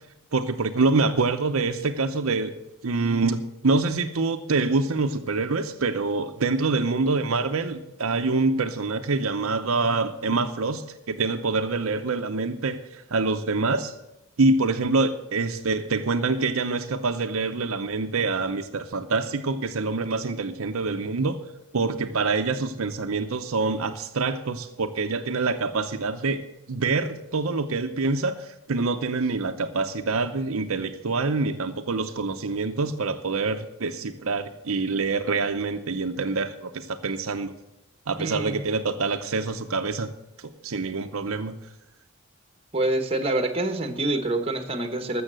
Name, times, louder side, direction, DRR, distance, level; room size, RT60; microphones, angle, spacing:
voice 1, 0.3-2.5 2.8-13.9 14.4-21.4 21.7-26.4 26.7-37.5 38.1-40.1 40.4-41.6, right 3 dB, 70° right, 7 dB, 0.7 m, -26 dB
voice 2, 38.2-38.6 42.7-45.2, right 2 dB, 25° right, 8 dB, 1.2 m, -26 dB
13.0 x 7.2 x 7.5 m, 0.91 s
head